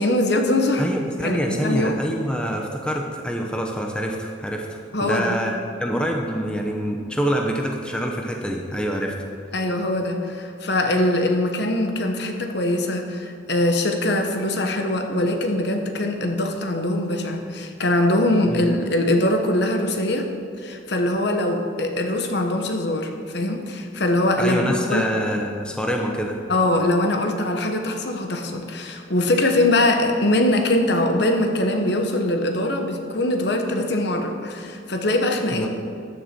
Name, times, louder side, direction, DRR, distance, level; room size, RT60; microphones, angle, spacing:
voice 1, 0.0-0.9 1.2-2.0 4.9-5.4 9.5-20.3 20.6-25.1 26.5-35.7, left 1 dB, 55° left, 4 dB, 1.1 m, -22 dB
voice 2, 0.8-9.1 18.5-18.6 24.4-26.4 35.5-35.7, equal, 5° left, 1 dB, 0.9 m, -26 dB
14.0 x 9.9 x 4.5 m, 2.3 s
head